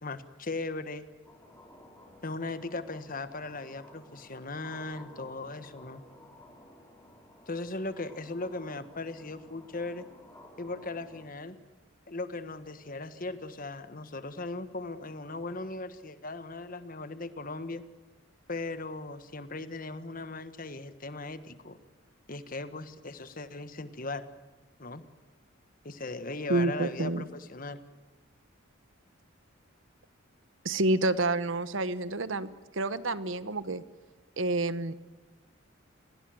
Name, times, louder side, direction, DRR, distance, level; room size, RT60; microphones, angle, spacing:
voice 1, 0.0-1.1 2.2-6.0 7.5-10.1 10.6-11.6 12.1-17.8 18.5-21.8 22.3-24.3 24.8-25.0 25.8-27.8, left 2 dB, 40° left, 11 dB, 1.4 m, -38 dB
sound 1, 1.2-11.3, left 1 dB, 10° left, 4.3 m, -54 dB
voice 2, 26.5-27.2 30.6-33.8 34.4-34.9, right 2 dB, 65° right, 14 dB, 1.1 m, -29 dB
29.0 x 20.5 x 7.8 m, 1.1 s
head